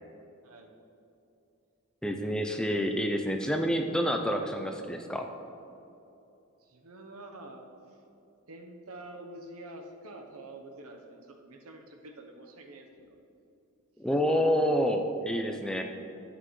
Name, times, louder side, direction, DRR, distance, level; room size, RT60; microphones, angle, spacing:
voice 1, 2.0-5.3 14.0-15.8, equal, 5° left, 4 dB, 0.4 m, -28 dB
voice 2, 6.6-7.6 8.5-13.2 14.1-14.3, right 2 dB, 80° right, 4 dB, 0.9 m, -47 dB
11.0 x 8.9 x 3.2 m, 2.8 s
head